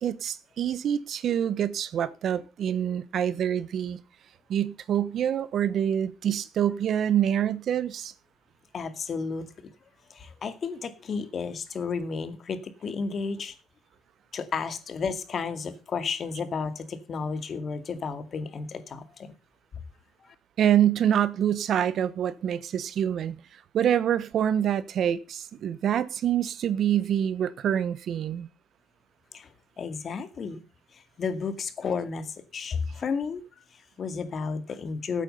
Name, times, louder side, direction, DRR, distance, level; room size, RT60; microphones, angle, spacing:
voice 1, 0.0-4.0 4.5-8.1 20.6-23.4 23.7-28.5, right 9 dB, 65° right, 1.1 m, -26 dB
voice 2, 8.7-9.5 10.1-13.6 14.3-19.3 20.2-20.3 29.3-30.6 30.9-33.4 33.7-35.2, left 5 dB, 50° left, 2.3 m, -32 dB
16.0 x 9.0 x 5.5 m
cardioid pair, 90°, 0 cm